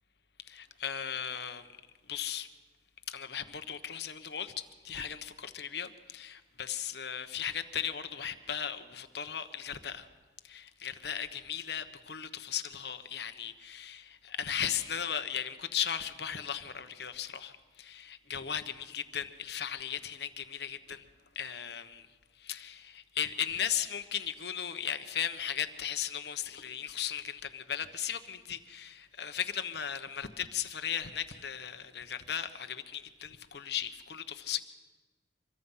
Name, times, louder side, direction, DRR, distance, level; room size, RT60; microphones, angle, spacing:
voice 1, 0.4-1.7 2.1-2.5 3.1-10.1 10.4-21.0 21.3-22.1 22.4-34.6, left 9 dB, 65° left, 1.1 m, -37 dB
26.0 x 22.5 x 5.7 m
head